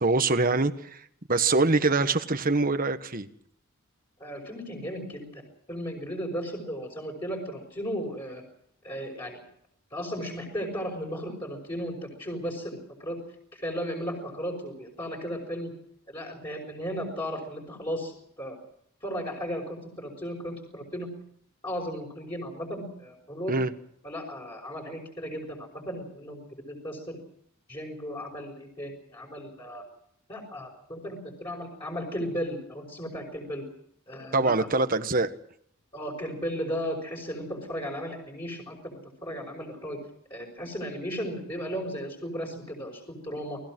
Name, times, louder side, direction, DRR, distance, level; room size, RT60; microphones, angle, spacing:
voice 1, 0.0-3.3 23.5-23.7 34.3-35.3, right 3 dB, 40° right, 10 dB, 1.4 m, -24 dB
voice 2, 4.2-5.4 5.7-8.4 8.8-9.4 9.9-13.2 13.5-15.7 16.1-18.6 19.0-21.1 21.6-23.6 24.0-27.2 27.7-29.8 30.3-33.6 34.1-34.7 35.9-40.0 40.3-43.6, equal, 20° left, -2 dB, 5.4 m, -35 dB
29.0 x 20.0 x 6.2 m, 0.69 s
head